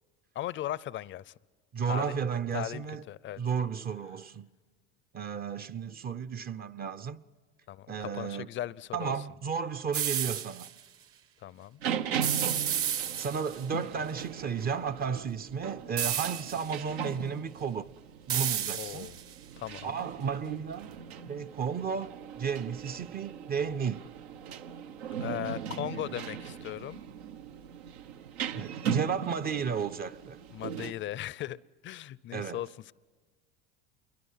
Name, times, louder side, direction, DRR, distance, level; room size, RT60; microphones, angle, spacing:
voice 1, 0.3-1.3 1.9-2.2 2.5-3.4 7.7-9.1 11.4-11.8 18.7-19.2 19.6-20.0 25.2-27.0 30.5-32.9, left 13 dB, 40° left, 0.5 m, -38 dB
voice 2, 1.7-3.0 3.4-4.5 5.1-7.2 7.9-8.5 8.9-10.7 13.2-17.9 18.3-19.1 19.8-20.9 21.3-24.0 28.5-30.4 32.3-32.6, right 6 dB, 30° right, 0.6 m, -33 dB
sound 1, 9.9-10.7 12.2-13.6 16.0-16.8 18.3-19.3, right 9 dB, 45° right, 1.0 m, -31 dB
sound 2, 11.8-30.9, right 8 dB, 85° right, 1.0 m, -39 dB
27.5 x 22.5 x 5.6 m
supercardioid pair, 95°, 30 cm